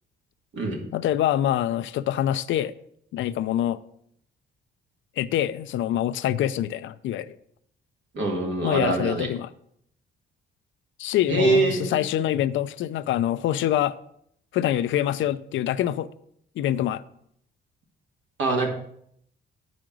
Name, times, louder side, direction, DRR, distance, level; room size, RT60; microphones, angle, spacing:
voice 1, 0.9-2.7 3.1-3.8 5.2-7.3 8.6-9.5 11.0-13.9 14.5-16.1 16.6-17.0, left 12 dB, 75° left, 0.5 m, -25 dB
voice 2, 8.1-9.3 11.3-12.0 18.4-18.7, right 3 dB, 70° right, 2.1 m, -23 dB
8.7 x 5.1 x 6.0 m
cardioid pair, 90°, 20 cm